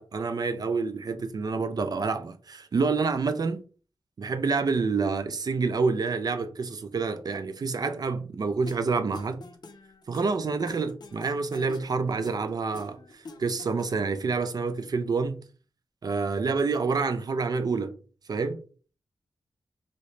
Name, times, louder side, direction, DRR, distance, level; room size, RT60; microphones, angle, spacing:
voice 1, 0.0-3.6 4.2-9.4 10.1-15.4 16.0-18.0 18.3-18.6, right 4 dB, 45° right, 0.4 m, -28 dB
sound 1, 8.7-14.2, left 3 dB, 50° left, 0.5 m, -46 dB
3.0 x 2.7 x 3.1 m
wide cardioid pair, 160°, 9 cm